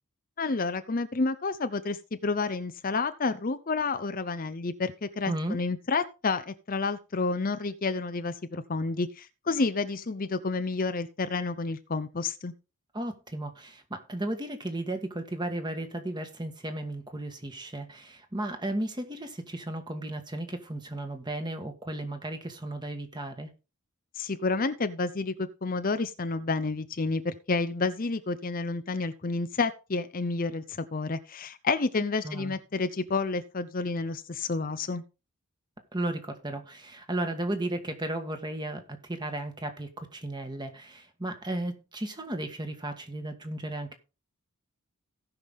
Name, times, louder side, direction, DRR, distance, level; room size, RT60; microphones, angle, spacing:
voice 1, 0.4-12.5 24.1-35.0, left 3 dB, 40° left, 0.6 m, -30 dB
voice 2, 5.3-5.6 12.9-23.5 32.2-32.5 35.9-44.0, right 1 dB, 20° right, 1.6 m, -34 dB
17.5 x 5.9 x 3.6 m
head